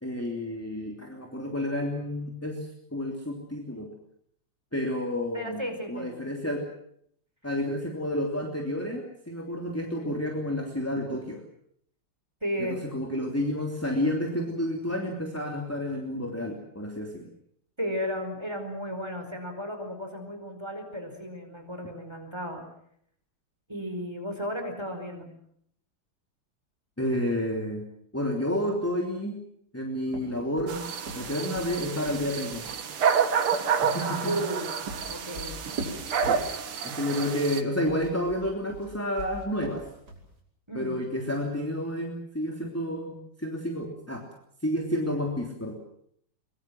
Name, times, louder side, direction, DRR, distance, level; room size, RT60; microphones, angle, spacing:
voice 1, 0.0-3.9 4.7-6.7 7.4-11.4 12.6-17.3 27.0-27.8 28.1-29.4 29.7-30.8 31.1-32.6 33.8-34.3 36.3-36.4 36.8-39.8 40.7-44.2 44.6-45.7, left 1 dB, 5° left, 1 dB, 3.0 m, -30 dB
voice 2, 5.3-6.2 12.4-12.8 17.8-22.6 23.7-25.3 34.0-34.7 35.1-35.5 40.7-41.0, equal, 10° right, 5 dB, 4.8 m, -34 dB
sound 1, 30.0-32.7 34.4-36.8 37.7-40.3, right 1 dB, 45° right, 6.2 m, -40 dB
sound 2, 30.7-37.6, right 7 dB, 75° right, 2.6 m, -29 dB
23.0 x 22.5 x 7.7 m, 0.68 s
omnidirectional pair, 2.4 m